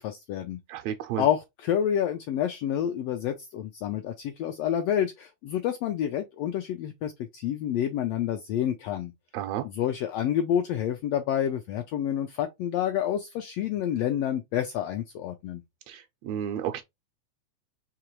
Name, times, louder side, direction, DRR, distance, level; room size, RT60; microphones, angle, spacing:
voice 1, 0.0-0.6 1.2-9.1 9.6-15.6, left 10 dB, 80° left, 1.4 m, -28 dB
voice 2, 0.7-1.2 9.3-9.7 15.9-16.8, right 10 dB, 80° right, 1.6 m, -32 dB
4.9 x 2.9 x 3.0 m
omnidirectional pair, 3.4 m